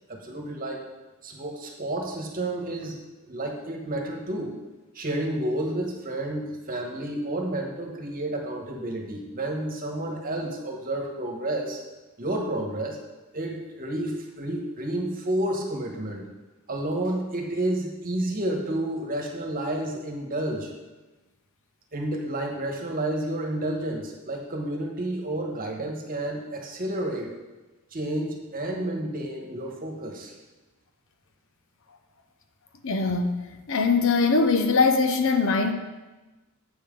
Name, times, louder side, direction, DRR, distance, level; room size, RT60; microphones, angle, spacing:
voice 1, 0.1-0.9 1.2-3.0 3.3-4.6 4.9-11.8 12.2-13.0 13.3-16.2 16.7-20.7 21.9-27.3 27.9-30.3, right 1 dB, 40° right, 1 dB, 1.2 m, -30 dB
voice 2, 32.8-33.4 33.7-35.7, left 4 dB, 60° left, 7 dB, 0.7 m, -21 dB
8.0 x 5.7 x 5.2 m, 1.2 s
head